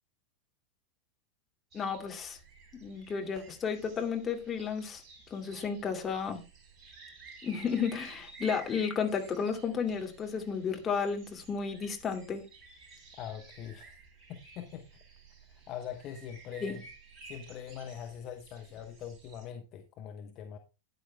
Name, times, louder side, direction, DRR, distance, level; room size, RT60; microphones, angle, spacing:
voice 1, 1.7-2.4 2.7-5.0 5.3-6.4 7.4-12.4 16.6-16.8, left 6 dB, 20° left, 2.4 m, -33 dB
sound 1, 1.7-19.5, right 4 dB, 30° right, 4.1 m, -53 dB
voice 2, 13.2-14.0 14.3-15.0 15.5-16.8 17.2-20.6, left 9 dB, 35° left, 1.1 m, -43 dB
13.5 x 9.7 x 2.2 m
figure-of-eight pair, 90°, 0 cm